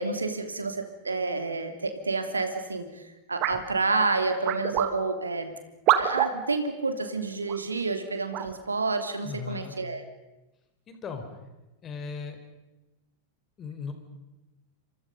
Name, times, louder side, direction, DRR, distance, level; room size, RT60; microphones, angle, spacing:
voice 1, 0.0-2.8 3.3-5.6 6.0-10.0, right 3 dB, 80° right, 8 dB, 2.9 m, -29 dB
sound 1, 3.4-3.6 4.4-4.9 5.9-6.3 7.5-7.6 8.3-8.5, right 12 dB, 40° right, 2.1 m, -25 dB
voice 2, 9.2-9.8 10.9-11.2 11.8-12.4 13.6-13.9, left 6 dB, 25° left, 7 dB, 4.5 m, -37 dB
29.0 x 26.0 x 5.4 m, 1.0 s
figure-of-eight pair, 90°, 0 cm